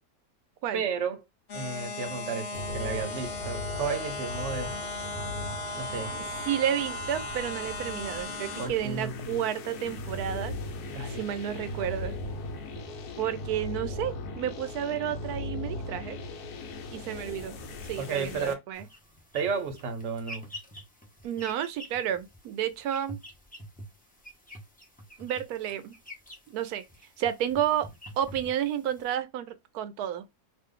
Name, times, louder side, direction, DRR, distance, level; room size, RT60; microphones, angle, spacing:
voice 1, 0.7-1.2 1.5-4.8 5.7-6.2 8.6-9.4 10.9-11.2 11.7-11.9 18.0-18.6 19.3-20.5, right 5 dB, 55° right, 0.9 m, -33 dB
sound 1, 1.5-8.7, left 2 dB, 60° left, 0.9 m, -37 dB
sound 2, 2.5-18.5, left 2 dB, 75° left, 1.2 m, -38 dB
voice 2, 6.2-10.5 11.1-12.2 13.2-16.2 16.9-17.6 17.9-18.9 21.2-23.2 25.2-25.9 26.5-26.8 27.2-27.9 28.2-30.3, right 10 dB, 80° right, 1.1 m, -31 dB
sound 3, 18.7-29.1, equal, 10° left, 0.6 m, -47 dB
2.6 x 2.5 x 3.7 m
omnidirectional pair, 1.7 m